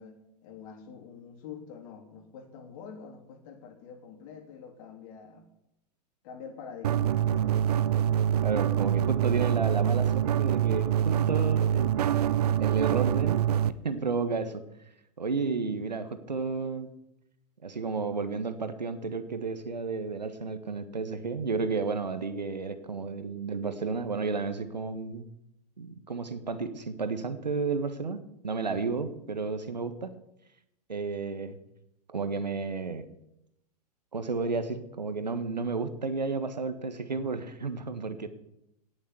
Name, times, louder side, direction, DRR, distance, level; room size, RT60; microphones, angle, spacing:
voice 1, 0.0-5.5 6.2-7.7, left 6 dB, 50° left, 5 dB, 3.2 m, -46 dB
sound 1, 6.8-13.7, right 10 dB, 65° right, 0.8 m, -25 dB
voice 2, 8.4-12.2 12.6-13.5 13.8-14.6 15.2-16.9 17.6-25.2 25.8-30.1 30.9-31.6 32.1-33.1 34.1-38.3, right 4 dB, 90° right, 10 dB, 1.5 m, -32 dB
18.0 x 7.1 x 8.2 m, 0.85 s
hypercardioid pair, 100°, 21 cm